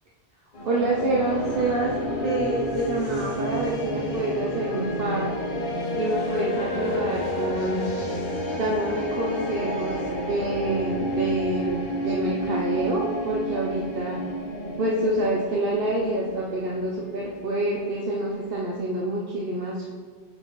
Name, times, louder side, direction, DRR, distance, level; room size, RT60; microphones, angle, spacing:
sound 1, 0.5-18.7, equal, 50° left, 1.1 m, -30 dB
voice 1, 0.6-1.9 2.2-5.3 5.9-7.9 8.5-10.0 10.3-14.2 14.8-19.9, right 1 dB, 60° right, -3 dB, 1.0 m, -27 dB
10.0 x 4.5 x 4.0 m, 1.5 s
omnidirectional pair, 1.1 m